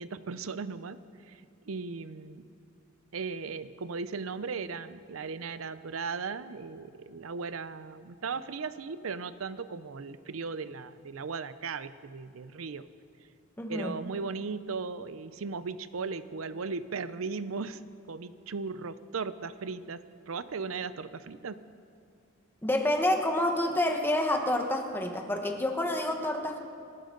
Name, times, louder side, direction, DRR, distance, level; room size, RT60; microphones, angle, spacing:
voice 1, 0.0-2.4 3.1-12.9 13.7-17.8 18.1-21.6, right 4 dB, 80° right, 14 dB, 0.6 m, -37 dB
voice 2, 13.6-13.9 22.6-26.6, left 1 dB, 10° left, 3 dB, 1.3 m, -28 dB
28.0 x 12.0 x 3.9 m, 2.4 s
head